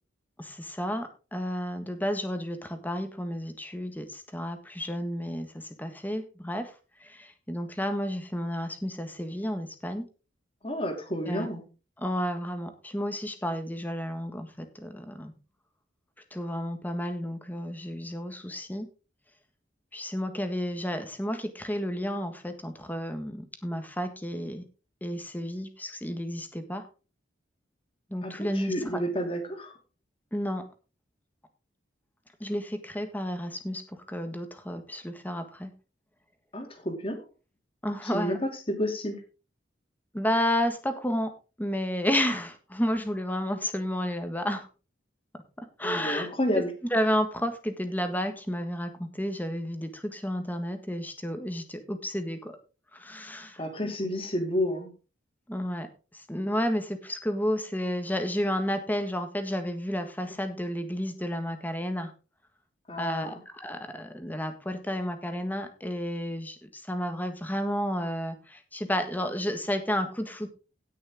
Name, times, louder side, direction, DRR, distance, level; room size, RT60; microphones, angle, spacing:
voice 1, 0.4-6.7 7.0-10.1 11.2-11.5 12.0-15.3 16.3-18.9 19.9-24.6 25.0-26.8 28.1-28.7 30.3-30.6 32.4-35.7 37.8-38.4 40.1-41.3 41.6-44.7 45.6-46.3 46.9-52.6 52.9-53.9 55.5-55.9 56.1-62.1 63.0-70.5, equal, 10° left, 7 dB, 1.5 m, -31 dB
voice 2, 10.6-11.6 28.2-29.7 36.5-37.2 38.0-39.2 45.8-46.7 53.6-54.9 62.9-63.4, equal, 30° left, 4 dB, 2.6 m, -30 dB
17.0 x 6.5 x 3.7 m, 0.33 s
head